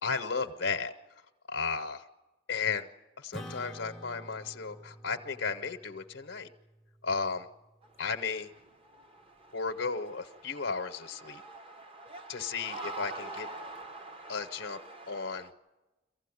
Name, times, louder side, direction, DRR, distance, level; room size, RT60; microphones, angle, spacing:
voice 1, 0.0-0.9 1.5-2.1 2.5-2.9 3.2-6.5 7.0-7.5 8.0-8.5 9.5-11.4 12.3-13.5 14.3-14.8 15.1-15.5, left 5 dB, 75° left, 6 dB, 0.8 m, -34 dB
Acoustic guitar / Strum, 3.3-8.1, equal, ahead, 0.7 m, -49 dB
sound 1, 7.8-15.5, right 2 dB, 30° right, 0.9 m, -45 dB
23.5 x 15.5 x 9.7 m, 1.1 s
head